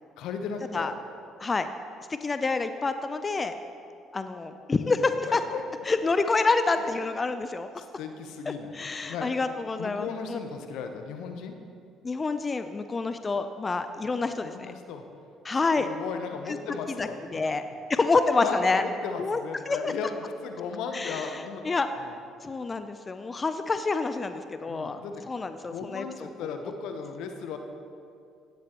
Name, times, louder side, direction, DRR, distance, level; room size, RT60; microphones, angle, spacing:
voice 1, 0.2-0.9 5.3-5.6 6.8-6.9 7.8-9.3 9.8-11.5 14.0-14.1 14.4-15.0 15.7-17.6 18.4-22.1 24.7-25.3 25.7-27.6, left 5 dB, 75° left, 5 dB, 0.9 m, -36 dB
voice 2, 2.2-3.5 4.1-5.4 5.9-7.7 8.7-10.4 12.0-14.7 15.4-15.9 16.5-16.6 17.0-17.6 17.9-18.8 19.2-19.4 19.7-19.9 20.9-21.9 22.4-25.0 25.3-26.3, left 3 dB, 30° left, 9 dB, 0.6 m, -27 dB
16.0 x 10.5 x 3.0 m, 2.4 s
hypercardioid pair, 60°, 0 cm